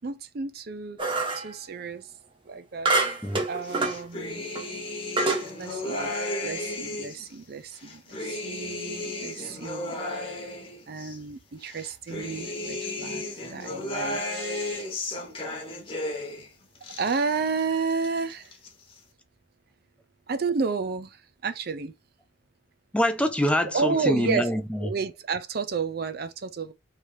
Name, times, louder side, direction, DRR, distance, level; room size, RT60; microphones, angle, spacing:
voice 1, 0.0-1.0 1.3-2.1 2.5-3.0 3.5-4.5 5.6-10.2 10.9-13.2 13.5-14.9 17.0-18.5 20.3-21.9 23.7-24.5 24.8-26.7, right 4 dB, 50° right, 0.4 m, -31 dB
sound 1, 1.0-1.5 2.9-4.0 4.5-4.6 5.2-5.5, right 3 dB, 25° right, 0.8 m, -26 dB
sound 2, 3.6-7.3 7.7-11.2 11.6-16.5 16.7-17.6 17.9-18.7, left 2 dB, 30° left, 0.9 m, -34 dB
voice 2, 22.9-24.9, equal, 5° left, 0.5 m, -25 dB
3.2 x 2.7 x 4.5 m
head